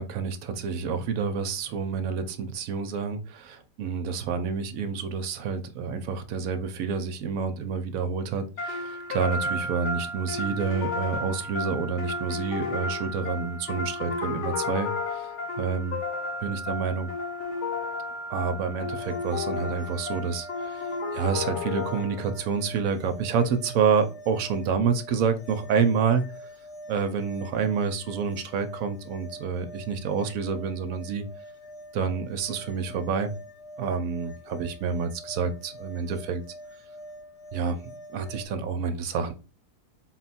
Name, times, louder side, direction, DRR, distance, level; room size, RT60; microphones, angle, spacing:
voice 1, 0.0-15.3 15.6-16.0 16.4-17.1 18.3-26.3 26.9-31.3 31.9-33.3 33.8-36.4 37.5-37.8 38.1-39.3, right 6 dB, 70° right, 8 dB, 0.9 m, -28 dB
sound 1, 8.6-22.4, left 3 dB, 55° left, 1.0 m, -33 dB
sound 2, 19.0-38.5, equal, 80° left, 1.4 m, -45 dB
4.2 x 2.3 x 4.1 m, 0.33 s
omnidirectional pair, 1.7 m